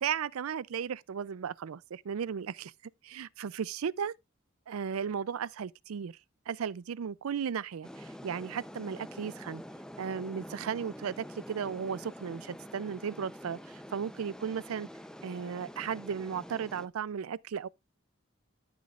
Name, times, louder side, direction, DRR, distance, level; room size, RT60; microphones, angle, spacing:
voice 1, 0.0-2.7 3.0-4.1 4.7-6.2 6.5-9.6 10.0-14.9 15.2-17.7, right 7 dB, 85° right, 0.4 m, -35 dB
sound 1, 7.8-16.9, equal, 5° left, 0.6 m, -47 dB
13.5 x 6.3 x 2.4 m
head